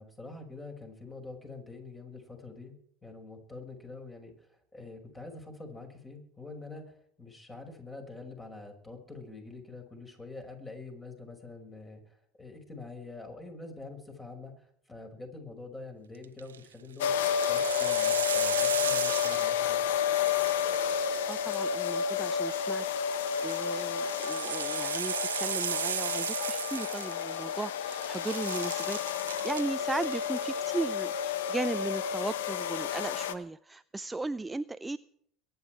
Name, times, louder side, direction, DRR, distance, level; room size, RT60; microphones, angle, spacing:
voice 1, 0.0-2.7 3.0-17.1 17.5-19.8, left 3 dB, 20° left, 4 dB, 5.9 m, -46 dB
sound 1, 16.2-16.6 17.1-19.8 20.1-21.9 23.1-27.6 27.9-29.6 30.0-30.4, right 9 dB, 85° right, 0.8 m, -36 dB
sound 2, 17.0-33.3, left 9 dB, 75° left, 1.1 m, -31 dB
voice 2, 21.3-29.0 29.4-35.0, right 3 dB, 15° right, 14 dB, 0.5 m, -36 dB
23.0 x 10.5 x 4.7 m, 0.66 s
hypercardioid pair, 75°, 0 cm